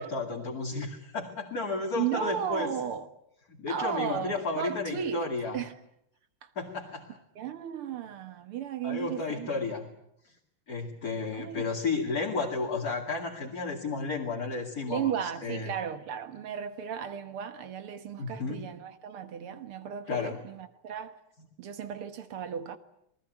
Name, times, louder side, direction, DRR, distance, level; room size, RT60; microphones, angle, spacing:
voice 1, 0.0-2.7 3.6-5.6 6.6-7.1 8.8-9.9 10.7-15.7 18.2-18.6 20.1-20.4, left 4 dB, 40° left, 2.8 m, -33 dB
voice 2, 2.0-3.1 3.7-5.2 5.5-5.7 6.4-6.5 7.4-9.5 11.3-11.7 14.9-21.2 21.6-22.8, right 8 dB, 75° right, 2.3 m, -35 dB
27.5 x 19.5 x 9.1 m
omnidirectional pair, 2.4 m